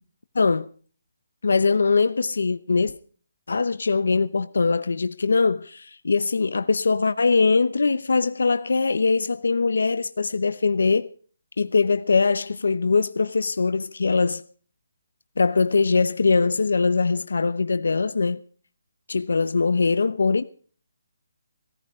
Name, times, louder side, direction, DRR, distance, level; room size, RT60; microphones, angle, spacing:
voice 1, 0.3-0.7 1.4-2.9 3.5-11.1 11.6-14.4 15.4-18.4 19.1-20.4, left 4 dB, 80° left, 0.8 m, -22 dB
17.0 x 14.5 x 4.9 m
hypercardioid pair, 170°, 0 cm